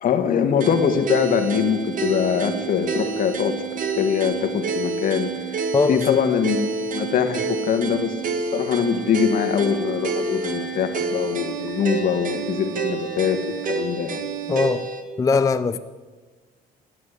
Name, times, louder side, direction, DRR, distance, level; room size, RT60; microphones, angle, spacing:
voice 1, 0.0-3.6 3.9-5.3 5.9-14.2, left 7 dB, 55° left, 1.6 m, -23 dB
sound 1, 0.6-15.0, right 5 dB, 55° right, 1.6 m, -28 dB
voice 2, 5.7-6.2 14.5-14.9 15.2-15.8, left 4 dB, 20° left, 0.4 m, -20 dB
Car / Alarm, 8.3-13.8, left 4 dB, 5° left, 5.6 m, -47 dB
14.5 x 12.0 x 8.1 m
cardioid pair, 110°, 17 cm